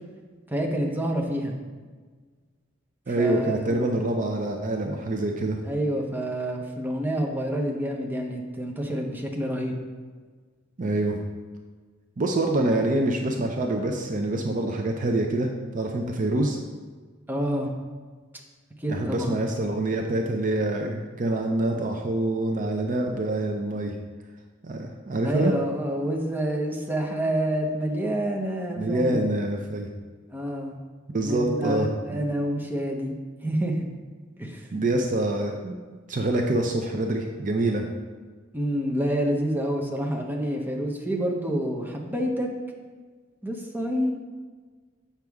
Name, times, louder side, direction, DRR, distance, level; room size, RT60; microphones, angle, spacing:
voice 1, 0.5-1.6 3.2-3.8 5.6-9.7 17.3-17.7 18.8-19.3 25.2-29.3 30.3-30.8 31.2-33.2 33.4-33.8 34.4-34.7 38.5-42.5 43.4-44.1, right 1 dB, 10° right, 0 dB, 0.8 m, -28 dB
voice 2, 3.1-5.6 10.8-11.2 12.2-16.6 18.9-24.0 24.6-25.5 28.8-29.9 31.1-32.2 34.7-35.8 36.1-37.9, right 2 dB, 45° right, 3 dB, 0.5 m, -26 dB
7.8 x 5.7 x 3.5 m, 1.4 s
head